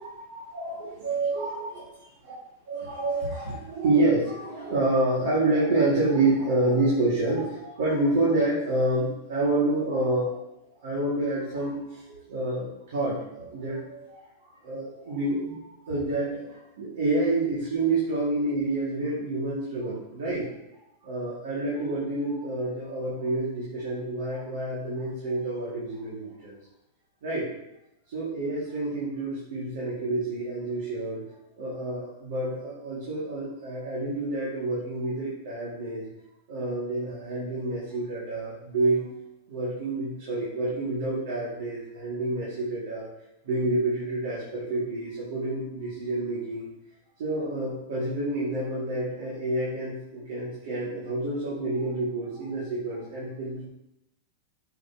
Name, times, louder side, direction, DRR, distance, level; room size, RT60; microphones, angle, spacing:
voice 1, 0.0-2.3 2.7-10.4 10.8-20.5 21.0-26.6 27.2-27.5 28.1-31.2 31.6-36.0 36.5-39.1 39.5-46.7 47.2-53.7, right 2 dB, 75° right, -7 dB, 2.4 m, -28 dB
7.5 x 6.8 x 3.1 m, 0.87 s
supercardioid pair, 140°, 0 cm